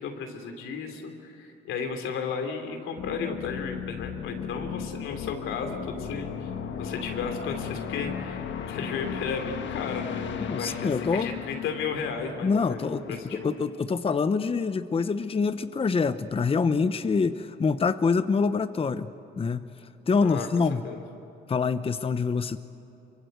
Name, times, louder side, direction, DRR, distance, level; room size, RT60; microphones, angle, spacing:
voice 1, 0.0-6.5 6.8-13.5 20.2-20.5 20.8-21.0, left 5 dB, 90° left, 4 dB, 3.1 m, -34 dB
sound 1, 3.0-13.7, left 8 dB, 70° left, 1.5 m, -36 dB
voice 2, 10.4-11.3 12.4-19.1 19.4-19.7 20.1-20.8 21.5-22.6, left 5 dB, 30° left, 11 dB, 0.8 m, -25 dB
24.5 x 24.0 x 8.0 m, 2.8 s
cardioid pair, 90°, 20 cm